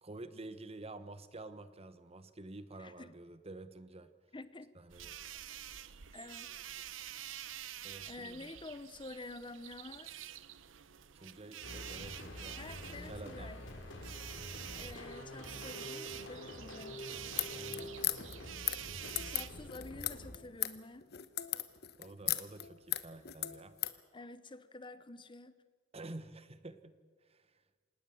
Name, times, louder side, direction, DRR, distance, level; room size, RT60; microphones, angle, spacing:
voice 1, 0.0-4.1 4.7-5.2 7.8-8.5 11.1-12.6 13.0-13.5 17.5-17.9 22.0-23.7 25.9-27.0 27.3-27.5, right 2 dB, 30° right, 1.1 m, -49 dB
voice 2, 2.8-3.1 4.3-4.7 5.6-5.7 6.1-6.6 8.1-10.1 12.6-13.6 14.7-17.0 19.2-21.1 24.1-25.6, left 2 dB, 25° left, 0.8 m, -49 dB
sound 1, 4.9-19.7, right 11 dB, 80° right, 0.8 m, -48 dB
sound 2, 11.6-20.4, left 1 dB, 70° left, 3.5 m, -47 dB
sound 3, 17.3-24.0, left 14 dB, 55° left, 1.1 m, -37 dB
26.0 x 19.0 x 7.0 m
head